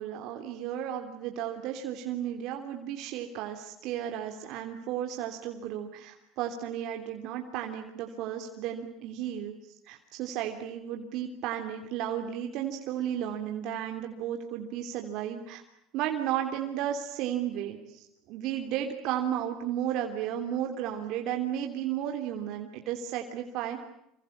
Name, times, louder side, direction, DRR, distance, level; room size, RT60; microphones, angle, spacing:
voice 1, 0.0-9.5 9.9-15.6 15.9-23.8, right 10 dB, 65° right, 4 dB, 3.2 m, -34 dB
27.5 x 25.0 x 8.6 m, 0.79 s
supercardioid pair, 100°, 0 cm